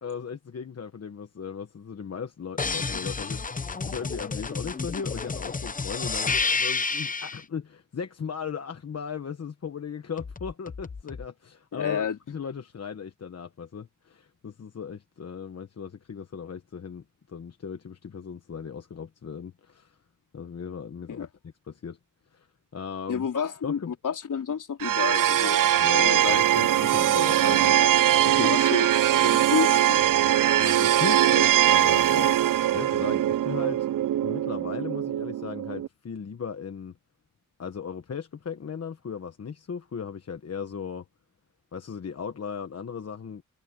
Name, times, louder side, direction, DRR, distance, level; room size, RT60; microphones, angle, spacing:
voice 1, 0.0-20.0 20.3-21.3 21.7-22.0 22.3-22.5 22.7-23.9 25.8-28.5 30.6-33.9 34.2-36.9 37.6-41.0 41.7-43.4, left 6 dB, 50° left, 1.2 m, -37 dB
sound 1, 2.6-7.4 10.2-11.3, left 4 dB, 25° left, 0.7 m, -30 dB
voice 2, 11.7-12.2 21.1-21.3 23.1-25.6 26.0-26.4 28.4-30.1, left 7 dB, 75° left, 3.8 m, -30 dB
sound 2, 24.8-35.9, right 12 dB, 80° right, 0.5 m, -22 dB
wide cardioid pair, 130°, 32 cm